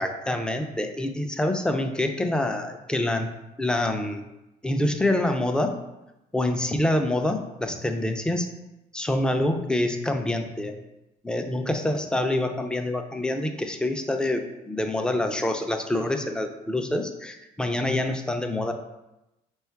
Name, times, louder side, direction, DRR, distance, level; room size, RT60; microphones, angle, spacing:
voice 1, 0.0-3.3 3.6-4.2 4.6-5.7 6.3-8.5 8.9-10.8 11.2-18.7, left 1 dB, 5° left, 5 dB, 0.3 m, -26 dB
3.6 x 2.3 x 4.4 m, 0.94 s
cardioid pair, 110°, 17 cm